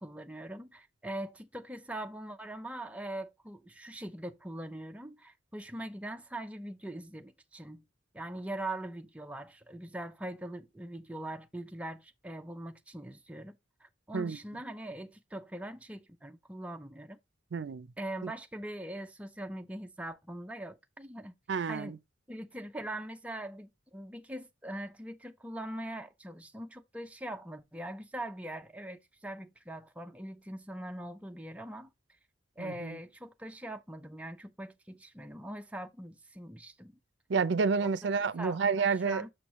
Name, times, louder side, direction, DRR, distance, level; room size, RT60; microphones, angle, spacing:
voice 1, 0.0-7.8 8.1-13.5 13.8-17.2 18.0-21.3 21.7-22.0 22.3-31.9 32.6-36.9 37.8-37.9 38.4-39.3, right 1 dB, 5° right, 0.4 m, -42 dB
voice 2, 17.5-17.9 18.2-18.3 21.5-22.0 32.6-33.0 37.3-39.2, right 5 dB, 65° right, 0.5 m, -30 dB
6.2 x 6.1 x 3.0 m
head